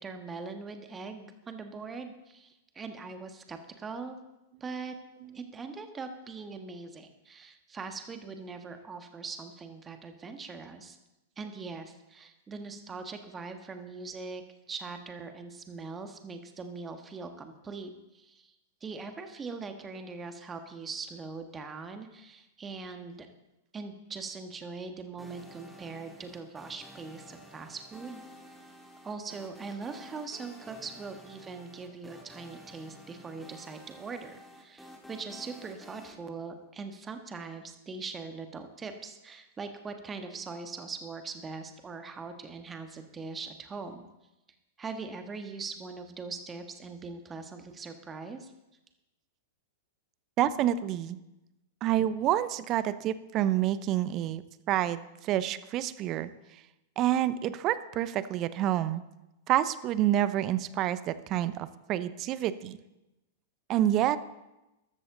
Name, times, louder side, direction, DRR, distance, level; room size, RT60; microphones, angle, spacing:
voice 1, 0.0-4.2 4.6-4.9 5.3-11.0 11.4-14.4 14.7-18.5 18.8-23.3 23.7-28.2 29.0-44.0 44.8-48.5, right 4 dB, 20° right, 7 dB, 1.5 m, -41 dB
sound 1, 25.2-36.1, equal, ahead, 2.5 m, -51 dB
voice 2, 50.4-51.2 51.8-54.4 54.7-56.3 57.0-59.0 59.5-62.8 63.7-64.2, right 12 dB, 35° right, 15 dB, 0.8 m, -28 dB
14.0 x 13.0 x 3.9 m, 0.95 s
figure-of-eight pair, 100°, 0 cm